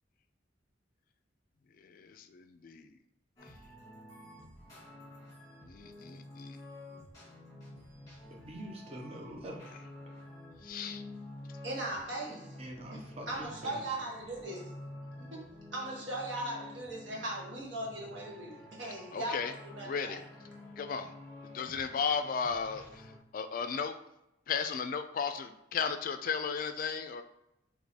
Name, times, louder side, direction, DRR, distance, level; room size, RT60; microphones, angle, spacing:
voice 1, 1.8-2.9 5.7-6.6 10.6-11.0 19.1-19.5 19.8-20.2 20.8-21.1 21.4-23.1 23.3-23.9 24.5-27.2, left 6 dB, 50° left, 9 dB, 0.3 m, -35 dB
sound 1, 3.4-23.2, left 1 dB, 20° left, 1.4 m, -50 dB
voice 2, 8.3-9.7 12.6-13.8, equal, 35° right, 0 dB, 0.7 m, -45 dB
voice 3, 11.6-12.5 12.9-14.7 15.2-15.5 15.7-20.2 20.5-20.6, right 1 dB, 85° right, -3 dB, 1.3 m, -39 dB
3.4 x 2.9 x 4.0 m, 0.86 s
head